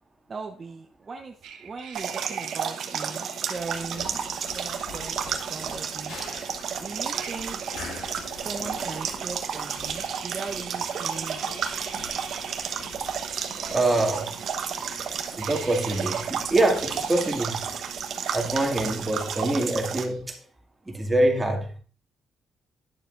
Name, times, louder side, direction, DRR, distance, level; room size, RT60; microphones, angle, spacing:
voice 1, 0.3-4.2 4.5-6.2 6.8-7.6 8.3-11.6, right 4 dB, 35° right, 0.8 m, -39 dB
sound 1, 1.4-6.6 6.9-9.3 9.7-16.3 16.7-17.6 17.8-20.2, right 7 dB, 85° right, 1.2 m, -45 dB
sound 2, 1.9-20.0, right 7 dB, 65° right, 1.1 m, -32 dB
sound 3, 3.6-19.3, left 4 dB, 80° left, 2.0 m, -46 dB
voice 2, 13.7-14.3 15.3-17.7 18.3-20.4 20.9-21.7, right 1 dB, 15° right, 2.1 m, -25 dB
10.5 x 6.9 x 2.5 m
cardioid pair, 90°, 0 cm